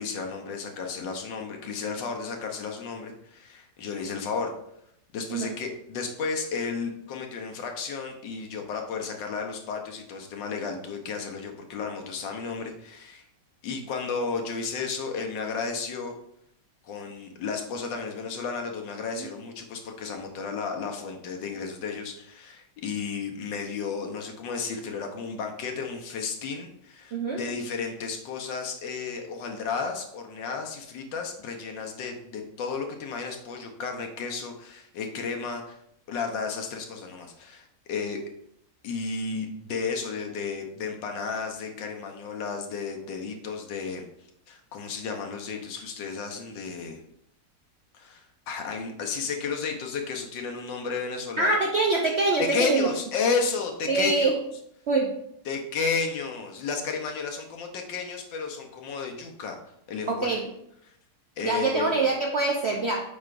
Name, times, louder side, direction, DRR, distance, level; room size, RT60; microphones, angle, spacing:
voice 1, 0.0-4.5 5.1-13.2 13.6-16.1 16.8-35.8 36.1-38.2 38.8-44.0 44.5-47.0 47.9-51.6 52.4-54.3 55.4-59.6 59.9-60.3 61.4-61.9, left 5 dB, 85° left, 3 dB, 1.6 m, -33 dB
voice 2, 27.1-27.4 51.4-52.9 53.9-54.4 54.9-55.1 60.1-60.5 61.4-63.0, right 3 dB, 70° right, 0 dB, 0.6 m, -24 dB
7.8 x 4.8 x 2.5 m, 0.76 s
omnidirectional pair, 1.9 m